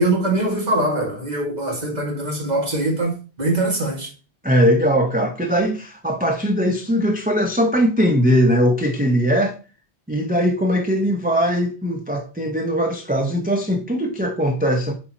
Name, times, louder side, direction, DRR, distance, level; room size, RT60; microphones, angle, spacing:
voice 1, 0.0-4.1, right 2 dB, 40° right, 2.1 m, -22 dB
voice 2, 4.4-9.6 10.1-14.9, equal, 10° right, 0.7 m, -20 dB
8.3 x 4.4 x 3.0 m
omnidirectional pair, 1.1 m